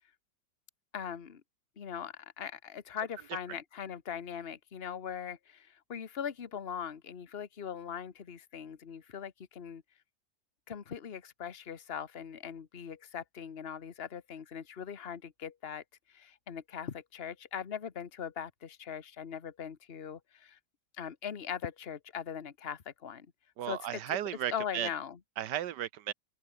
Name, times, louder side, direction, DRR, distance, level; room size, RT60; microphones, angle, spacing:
voice 1, 0.9-1.4 1.8-9.8 10.7-20.6 21.0-23.3 23.7-24.2 24.5-25.2, left 8 dB, 35° left, 1.4 m, -40 dB
voice 2, 23.6-24.9 25.4-26.1, right 11 dB, 70° right, 1.3 m, -34 dB
open air
omnidirectional pair, 2.0 m